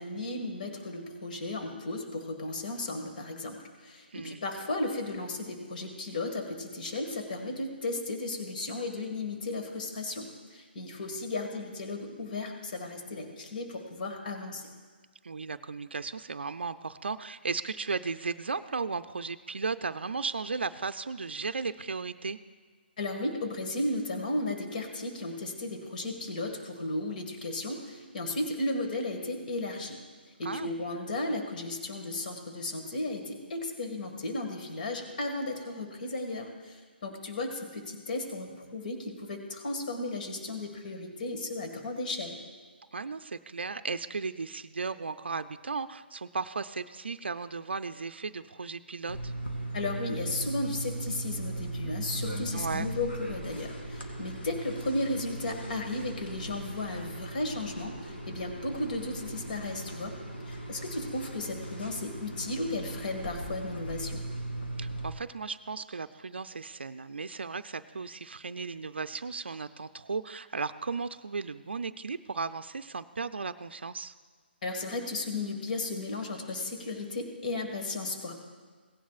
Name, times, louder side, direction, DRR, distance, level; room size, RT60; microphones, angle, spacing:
voice 1, 0.0-14.6 23.0-30.0 30.4-42.4 49.7-60.2 60.5-64.2 74.6-78.3, left 2 dB, 50° left, 3 dB, 1.8 m, -35 dB
voice 2, 15.2-22.4 30.4-30.9 42.9-49.3 52.5-52.9 64.8-74.1, right 4 dB, 80° right, 10 dB, 0.5 m, -35 dB
sound 1, 49.1-65.1, right 1 dB, 80° left, 2.4 m, -38 dB
17.5 x 10.0 x 2.4 m, 1.5 s
figure-of-eight pair, 150°, 6 cm